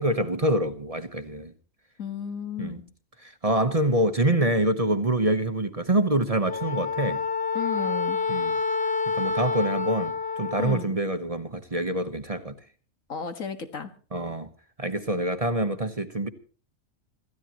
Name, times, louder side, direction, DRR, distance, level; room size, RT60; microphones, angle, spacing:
voice 1, 0.0-1.5 2.6-2.8 3.2-7.2 8.3-8.5 9.1-12.5 14.1-14.5 14.8-16.3, right 1 dB, 30° right, 1.1 m, -26 dB
voice 2, 2.0-2.8 7.5-8.2 10.6-10.9 13.1-13.9, left 7 dB, 75° left, 2.2 m, -33 dB
Wind instrument woodwind instrument, 6.5-10.9, left 5 dB, 45° left, 1.4 m, -28 dB
26.5 x 14.5 x 3.0 m
omnidirectional pair, 1.4 m